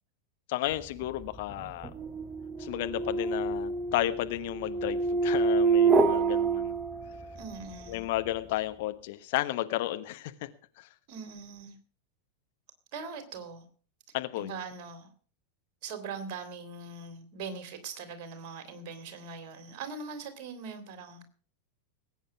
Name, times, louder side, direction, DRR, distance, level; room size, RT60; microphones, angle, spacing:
voice 1, 0.5-1.9 2.6-6.7 7.9-10.3 10.8-10.9 14.1-14.5, left 16 dB, 50° left, 1.2 m, -33 dB
sound 1, 1.0-7.5, right 4 dB, 20° right, 1.2 m, -27 dB
voice 2, 7.3-8.0 11.1-11.8 12.9-13.6 14.3-15.1 15.8-21.2, right 5 dB, 40° right, 3.3 m, -41 dB
19.5 x 9.1 x 6.0 m
figure-of-eight pair, 90°, 0 cm